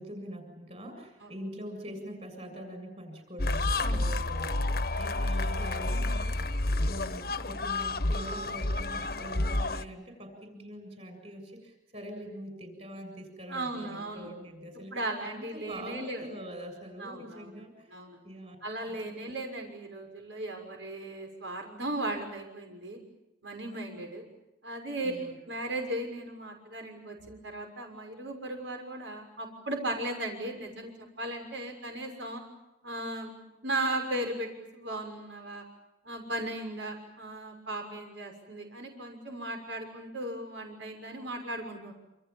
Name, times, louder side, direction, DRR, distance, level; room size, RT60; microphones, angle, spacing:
voice 1, 0.0-18.0 18.2-18.6 18.9-19.3 25.0-25.4, equal, 35° right, 7 dB, 7.3 m, -44 dB
sound 1, 3.4-9.8, left 2 dB, 55° left, 1.3 m, -30 dB
voice 2, 3.8-4.1 13.5-14.3 14.9-16.3 17.0-17.6 17.9-18.2 18.6-23.0 23.4-24.2 24.6-25.1 25.4-32.4 32.8-33.3 33.6-35.6 36.0-41.9, right 1 dB, 85° right, 3 dB, 6.4 m, -36 dB
28.0 x 27.0 x 7.3 m, 0.91 s
head